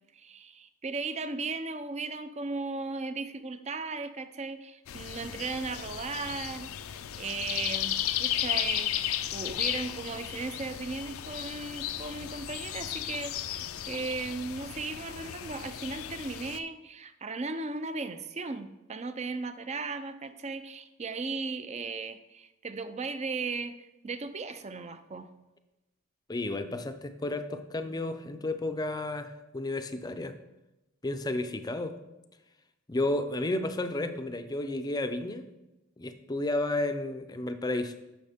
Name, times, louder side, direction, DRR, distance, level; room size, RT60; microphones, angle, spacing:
voice 1, 0.1-23.7 24.0-25.3, right 3 dB, 30° right, 10 dB, 0.5 m, -36 dB
sound 1, 4.9-16.6, left 11 dB, 75° left, 0.4 m, -35 dB
voice 2, 26.3-30.3 31.0-32.0 32.9-35.5 36.0-38.0, left 2 dB, 20° left, 9 dB, 0.5 m, -32 dB
10.5 x 6.3 x 3.6 m, 0.97 s
head